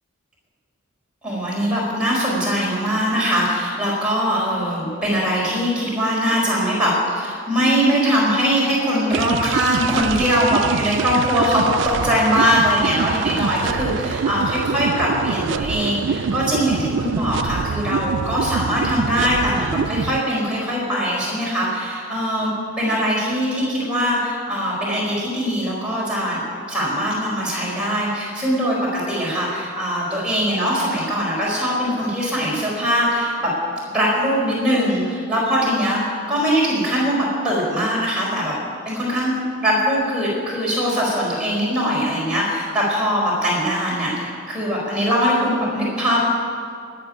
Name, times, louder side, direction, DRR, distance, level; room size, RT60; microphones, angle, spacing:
voice 1, 1.2-33.5 33.9-38.5 38.8-46.3, equal, 5° right, -7 dB, 4.5 m, -21 dB
sound 1, 9.1-20.2, right 6 dB, 55° right, 0.3 m, -25 dB
17.5 x 6.9 x 9.9 m, 2.2 s
head